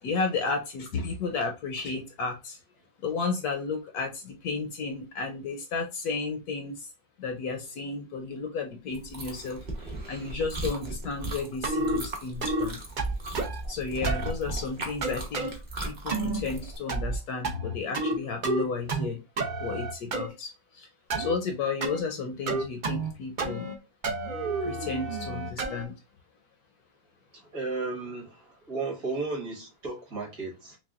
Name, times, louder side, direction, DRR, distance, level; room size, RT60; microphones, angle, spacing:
voice 1, 0.0-2.6 3.0-6.9 7.2-12.8 13.7-19.2 19.6-20.9 21.2-23.7 24.6-26.0, left 4 dB, 70° left, 1.0 m, -33 dB
Chewing mastication, 8.9-16.8, right 2 dB, 35° right, 0.7 m, -37 dB
sound 1, 11.6-12.0 12.4-12.7 13.0-13.6 14.0-14.3 15.0-15.5 16.1-16.4 16.9-17.2 17.4-18.2 18.4-19.1 19.4-20.3 21.1-21.3 21.8-22.0 22.5-23.1 23.4-23.7 24.0-25.8, right 2 dB, 80° right, 0.4 m, -30 dB
voice 2, 27.3-30.8, right 3 dB, 55° right, 1.9 m, -34 dB
5.8 x 2.1 x 2.4 m
omnidirectional pair, 1.9 m